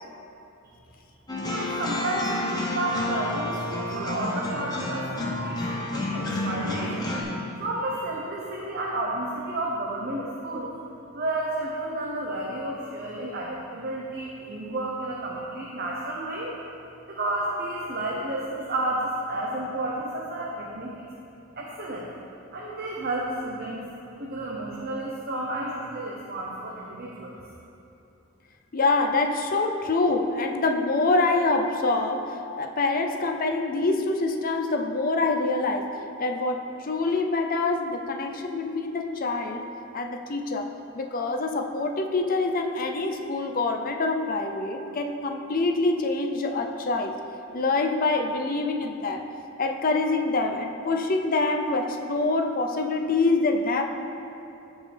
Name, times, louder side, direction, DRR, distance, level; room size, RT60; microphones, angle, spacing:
sound 1, 1.3-7.2, left 1 dB, 20° left, 1.0 m, -30 dB
voice 1, 1.3-7.1 7.6-10.7 11.1-16.5 17.0-20.9 21.6-22.1 22.5-23.8 24.2-27.3, right 1 dB, 45° right, -3 dB, 0.8 m, -31 dB
voice 2, 28.7-35.9 36.2-39.6 39.9-47.2 47.5-49.2 49.6-53.8, left 3 dB, 40° left, 3 dB, 0.5 m, -25 dB
15.0 x 5.4 x 3.4 m, 2.8 s
head